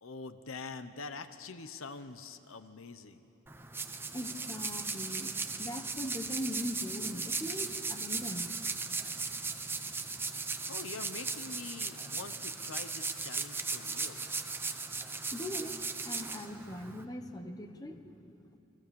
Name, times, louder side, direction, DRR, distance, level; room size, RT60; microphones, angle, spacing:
voice 1, 0.0-3.2 10.7-14.3, left 4 dB, 90° left, 10 dB, 1.1 m, -45 dB
sound 1, 3.5-17.0, right 4 dB, 10° right, 0.9 m, -37 dB
voice 2, 4.1-8.6 15.3-15.8 16.0-18.6, equal, 20° left, 6 dB, 1.3 m, -41 dB
28.5 x 23.5 x 7.2 m, 2.8 s
head